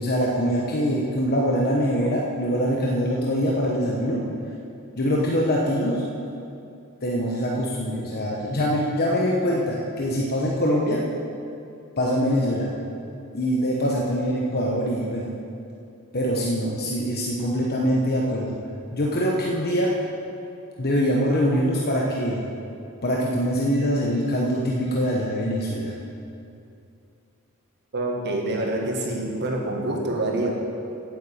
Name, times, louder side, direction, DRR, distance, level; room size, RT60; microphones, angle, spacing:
voice 1, 0.0-4.2 5.0-6.0 7.0-11.0 12.0-12.7 13.3-15.3 16.1-18.6 18.9-20.0 20.8-22.4 23.0-25.9, equal, 45° left, -3 dB, 1.1 m, -23 dB
voice 2, 27.9-30.5, right 2 dB, 50° right, 0 dB, 1.8 m, -26 dB
9.1 x 7.8 x 8.5 m, 2.6 s
head